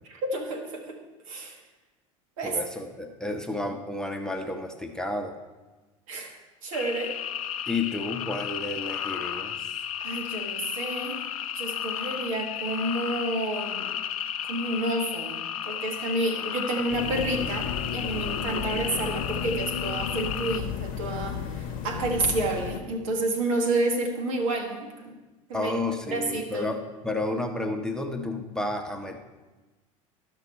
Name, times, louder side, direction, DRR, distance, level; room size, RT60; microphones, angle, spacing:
voice 1, 0.0-1.0 1.3-1.6 2.4-2.6 6.1-7.1 10.0-11.2 11.5-13.9 14.5-25.2 25.5-25.7 26.1-26.7, right 2 dB, 70° right, 3 dB, 1.4 m, -30 dB
voice 2, 2.4-5.4 7.7-9.7 25.5-29.2, left 2 dB, 5° left, 4 dB, 0.9 m, -31 dB
sound 1, 6.7-20.6, left 9 dB, 80° left, 0.5 m, -33 dB
sound 2, 16.9-22.8, left 7 dB, 55° left, 0.9 m, -33 dB
12.5 x 6.0 x 4.4 m, 1.2 s
hypercardioid pair, 75°, 18 cm